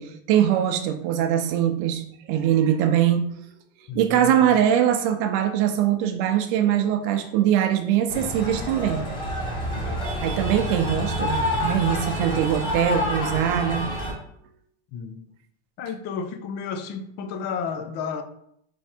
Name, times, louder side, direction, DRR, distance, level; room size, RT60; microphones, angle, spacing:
voice 1, 0.0-3.2 3.9-9.0 10.2-13.8, right 10 dB, 55° right, 0.7 m, -22 dB
voice 2, 3.9-4.4 9.8-10.0 14.9-15.2 15.8-18.2, left 6 dB, 35° left, 0.4 m, -32 dB
sound 1, 8.1-14.1, left 1 dB, 15° left, 1.2 m, -28 dB
3.5 x 3.1 x 4.3 m
supercardioid pair, 155°, 32 cm